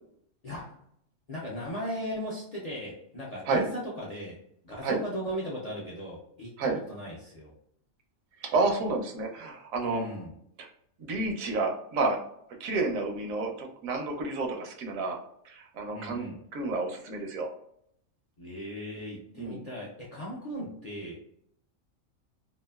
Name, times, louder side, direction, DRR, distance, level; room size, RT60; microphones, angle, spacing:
voice 1, 0.4-0.8 1.3-4.4 4.6-7.5 9.8-10.3 15.9-16.4 18.4-21.2, equal, 55° left, -5 dB, 0.4 m, -37 dB
voice 2, 8.4-10.0 10.6-10.7 11.0-12.2 12.6-15.2 15.4-16.3 16.5-17.5 19.3-19.6, right 3 dB, 80° right, 2 dB, 1.0 m, -30 dB
2.9 x 2.3 x 2.3 m, 0.71 s
omnidirectional pair, 1.4 m